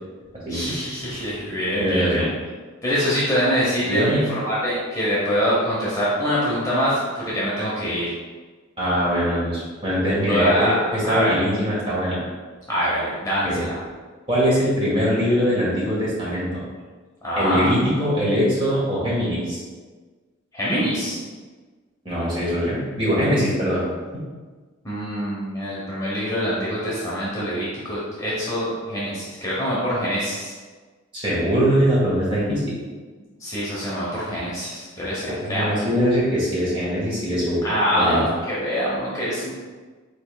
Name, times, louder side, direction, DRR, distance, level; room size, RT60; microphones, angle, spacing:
voice 1, 0.5-2.3 2.8-8.1 10.3-10.8 11.1-11.4 12.7-13.8 17.2-17.7 20.5-21.2 24.8-30.5 33.4-35.8 37.6-39.5, equal, 15° left, -8 dB, 0.9 m, -24 dB
voice 2, 1.8-2.3 3.8-4.2 8.8-12.2 13.4-13.6 14.3-16.5 17.4-19.6 22.0-23.8 24.1-24.2 31.1-32.6 35.3-37.6 37.9-38.3, equal, 25° right, -7 dB, 1.5 m, -22 dB
5.1 x 4.4 x 2.3 m, 1.4 s
head